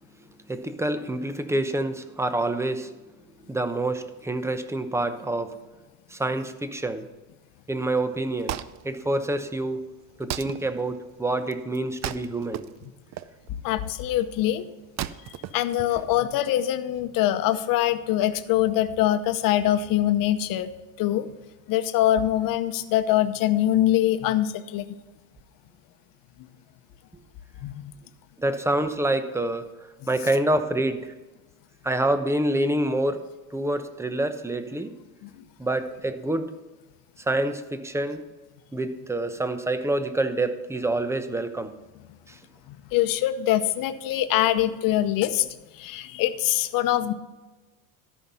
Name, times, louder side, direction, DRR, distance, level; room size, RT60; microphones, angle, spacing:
voice 1, 0.5-2.9 3.5-5.6 6.1-7.1 7.7-9.8 10.2-12.7 28.4-29.7 30.1-31.1 31.8-33.2 33.5-34.9 35.6-36.5 37.2-38.2 38.7-41.7 42.3-42.4, right 1 dB, 5° right, 9 dB, 0.9 m, -27 dB
Wood, 8.1-16.4, right 12 dB, 40° right, 0.5 m, -38 dB
voice 2, 13.6-14.6 15.5-20.7 21.0-21.3 21.7-24.8 27.6-27.9 35.2-35.3 42.9-45.5 45.8-47.1, left 13 dB, 55° left, 11 dB, 0.9 m, -23 dB
13.0 x 5.7 x 5.5 m, 1.2 s
supercardioid pair, 100°, 41 cm